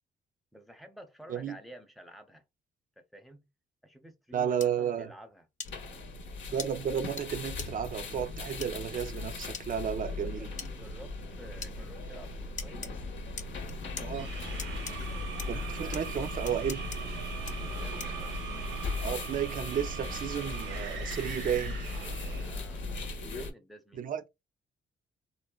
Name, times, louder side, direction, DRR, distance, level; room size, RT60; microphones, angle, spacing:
voice 1, 0.5-2.4 3.0-3.4 3.8-5.5 10.1-12.8 15.4-16.0 17.7-18.3 22.3-22.9 23.2-24.0, equal, ahead, 0.7 m, -51 dB
voice 2, 4.3-5.1 6.5-10.5 14.0-14.3 15.5-16.9 19.0-21.8 23.9-24.3, right 8 dB, 45° right, 0.5 m, -33 dB
sound 1, 4.6-4.7 5.6-5.7 6.6-6.7 7.2-7.3 7.6-7.7 8.6-8.7 9.5-9.7 10.6-10.7 11.6-11.7 12.6-12.9 13.4-14.1 14.6-14.9 15.4-15.5 15.9-16.0 16.5-17.0 17.5-17.6 18.0-18.2, left 6 dB, 40° left, 0.5 m, -40 dB
sound 2, 5.6-23.5, left 2 dB, 70° left, 0.8 m, -38 dB
sound 3, 14.1-22.6, right 6 dB, 75° right, 0.8 m, -42 dB
3.8 x 2.1 x 2.3 m
cardioid pair, 90°, 20 cm